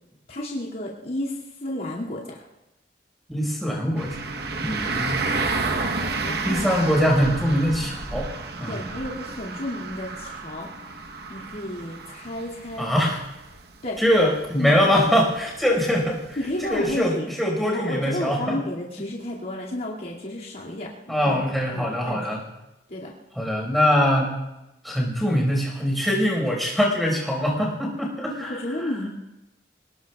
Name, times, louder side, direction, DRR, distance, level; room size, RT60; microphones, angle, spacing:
voice 1, 0.3-2.4 6.2-6.9 8.7-10.7 11.3-12.9 13.8-14.0 14.5-14.9 16.4-17.3 17.7-21.4 21.7-22.3 22.9-23.1 28.4-29.1, left 1 dB, 55° left, -6 dB, 2.4 m, -32 dB
voice 2, 3.3-4.2 4.6-5.2 6.4-8.3 8.6-8.8 12.8-13.2 14.0-16.4 16.6-17.1 17.4-18.6 21.1-22.4 23.3-24.4 24.8-28.5, equal, ahead, -2 dB, 5.0 m, -22 dB
sound 1, 4.0-17.0, right 3 dB, 60° right, 1.1 m, -32 dB
28.0 x 19.5 x 2.4 m, 0.95 s
head